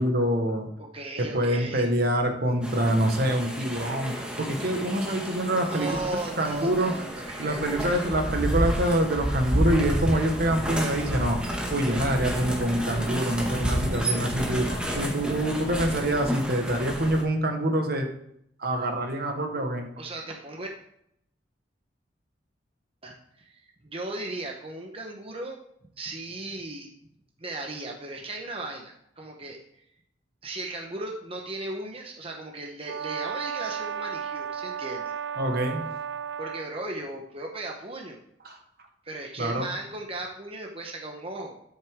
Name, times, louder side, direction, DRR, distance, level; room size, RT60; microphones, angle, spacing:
voice 1, 0.0-0.7 1.2-5.9 6.4-6.9 7.4-11.4 11.7-18.1 18.6-19.9 35.4-35.9 38.4-38.6 39.4-39.7, right 1 dB, 55° right, 4 dB, 1.4 m, -26 dB
voice 2, 0.8-1.9 5.6-8.0 20.0-20.7 23.0-25.6 26.0-26.9 27.4-29.8 30.4-35.2 36.4-38.2 39.0-41.6, right 2 dB, 30° right, 1 dB, 1.1 m, -37 dB
sound 1, 2.6-17.2, right 1 dB, 5° right, 1.6 m, -30 dB
Brass instrument, 32.8-36.7, right 7 dB, 75° right, 0.5 m, -34 dB
13.0 x 6.5 x 3.7 m, 0.73 s
head